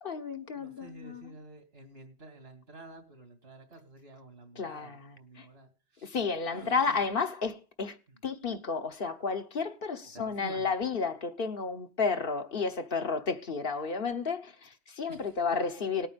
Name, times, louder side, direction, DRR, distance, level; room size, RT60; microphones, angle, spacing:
voice 1, 0.0-1.3 4.6-5.0 5.4-5.5 6.0-8.0 8.2-16.1, left 5 dB, 60° left, 1.3 m, -32 dB
voice 2, 0.5-6.2 6.4-7.1 8.1-8.2 10.1-10.7 15.1-16.1, right 2 dB, 75° right, 2.9 m, -50 dB
18.0 x 8.9 x 5.1 m
omnidirectional pair, 1.1 m